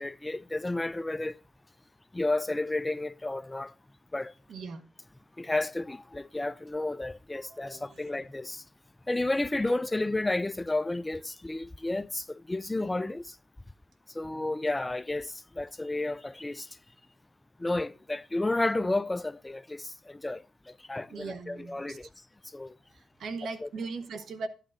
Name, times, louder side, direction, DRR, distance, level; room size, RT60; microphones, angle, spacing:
voice 1, 0.0-1.4 2.1-3.7 4.1-4.3 5.4-8.6 9.1-13.4 14.1-16.7 17.6-22.1 22.5-22.8 23.6-23.7, left 2 dB, 20° left, 0.3 m, -32 dB
voice 2, 4.5-4.8 7.3-8.2 21.1-22.0 22.9-24.5, right 4 dB, 75° right, 0.9 m, -39 dB
12.0 x 8.9 x 2.4 m
cardioid pair, 70°, 0 cm